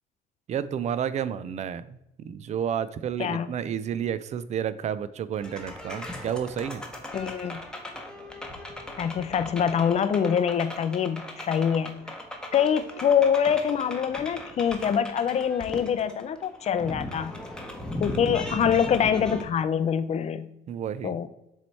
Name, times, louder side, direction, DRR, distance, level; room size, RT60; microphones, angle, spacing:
voice 1, 0.5-6.8 20.7-21.2, right 8 dB, 45° right, 15 dB, 0.4 m, -31 dB
sound 1, 5.3-19.4, left 1 dB, 5° left, 0.9 m, -38 dB
voice 2, 7.1-7.6 9.0-12.0 12.5-17.3 18.0-20.5 21.0-21.3, left 8 dB, 40° left, 13 dB, 0.5 m, -25 dB
7.2 x 3.2 x 4.1 m, 0.85 s
cardioid pair, 110°, 17 cm